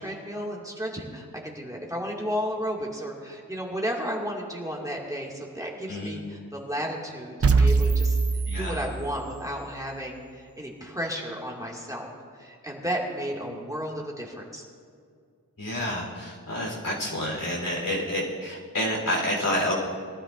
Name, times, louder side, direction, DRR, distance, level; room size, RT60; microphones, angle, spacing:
voice 1, 0.0-8.2 8.6-14.6, equal, 10° right, -2 dB, 2.1 m, -33 dB
voice 2, 5.9-6.2 8.5-8.9 15.6-19.7, left 1 dB, 75° left, -3 dB, 3.7 m, -29 dB
sound 1, 7.4-9.5, right 4 dB, 45° right, 0.6 m, -23 dB
22.0 x 12.5 x 2.5 m, 2.2 s
wide cardioid pair, 55°, 33 cm